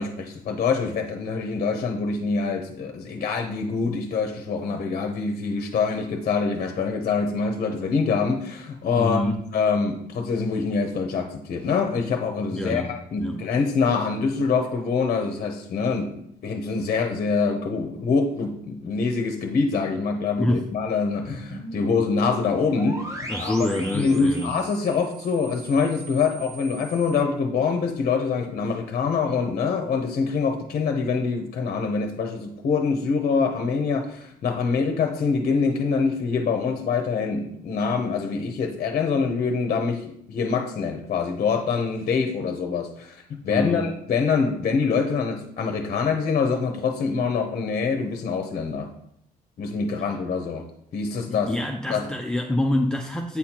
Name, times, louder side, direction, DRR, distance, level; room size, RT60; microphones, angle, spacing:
voice 1, 0.0-16.1 16.4-23.7 23.9-48.9 49.6-50.6 50.9-51.5 51.9-52.1, left 5 dB, 45° left, 4 dB, 0.7 m, -25 dB
voice 2, 9.0-9.4 12.5-13.4 20.4-20.7 23.3-24.6 43.5-43.9 51.3-53.4, left 1 dB, 5° left, 3 dB, 0.4 m, -26 dB
sound 1, 21.1-27.2, right 2 dB, 15° right, 0.8 m, -39 dB
8.2 x 4.2 x 2.9 m, 0.73 s
cardioid pair, 110°, 17 cm